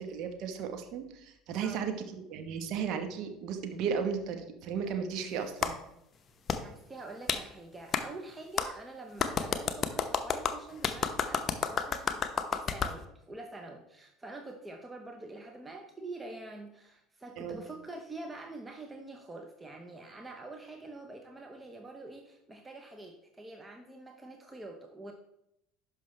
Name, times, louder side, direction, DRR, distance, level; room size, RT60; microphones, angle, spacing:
voice 1, 0.0-5.7 17.4-17.6, right 6 dB, 55° right, 6 dB, 1.2 m, -35 dB
voice 2, 1.6-1.9 6.6-25.1, right 2 dB, 15° right, 3 dB, 0.9 m, -46 dB
Clapping, 5.6-5.7 6.5-6.6 7.3-7.4 7.9-8.0 8.6-8.7 9.2-12.9, left 6 dB, 35° left, 0.8 m, -30 dB
11.5 x 5.5 x 3.3 m, 0.82 s
hypercardioid pair, 70°, 0 cm